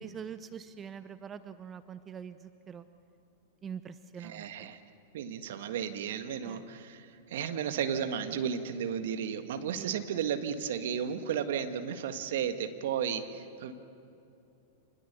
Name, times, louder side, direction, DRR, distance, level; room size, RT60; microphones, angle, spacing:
voice 1, 0.0-2.9 3.6-4.7 6.4-6.6 9.8-9.9, right 7 dB, 25° right, 12 dB, 0.8 m, -44 dB
voice 2, 4.2-4.8 5.1-13.7, right 8 dB, 65° right, 8 dB, 1.7 m, -34 dB
27.0 x 20.5 x 6.9 m, 2.7 s
hypercardioid pair, 100°, 0 cm